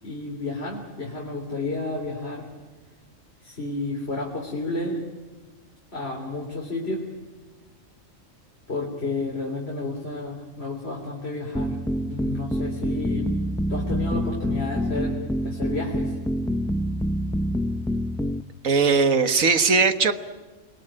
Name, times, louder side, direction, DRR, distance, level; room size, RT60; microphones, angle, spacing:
voice 1, 0.0-2.5 3.4-5.0 5.9-7.1 8.7-13.3 13.7-16.2, left 2 dB, 50° left, 0 dB, 3.9 m, -31 dB
sound 1, 11.5-18.4, equal, 5° left, 0.5 m, -26 dB
voice 2, 18.6-20.1, right 4 dB, 80° right, 9 dB, 1.8 m, -19 dB
29.0 x 21.5 x 9.0 m, 1.3 s
omnidirectional pair, 1.4 m